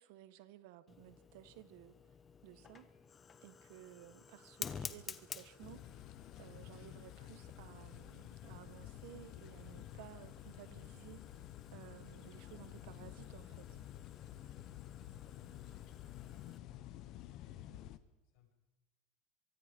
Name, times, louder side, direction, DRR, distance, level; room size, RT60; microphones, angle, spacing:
voice 1, 0.0-2.0 2.4-2.9 3.4-6.1 6.4-11.4 11.7-13.8, right 14 dB, 65° right, 1.2 m, -56 dB
Fire, 0.9-16.6, left 6 dB, 20° left, 0.9 m, -53 dB
sound 1, 5.6-18.0, left 13 dB, 40° left, 1.0 m, -51 dB
voice 2, 15.4-15.9 16.4-18.5, left 8 dB, 60° left, 6.2 m, -70 dB
23.5 x 23.0 x 5.3 m
supercardioid pair, 165°, 0 cm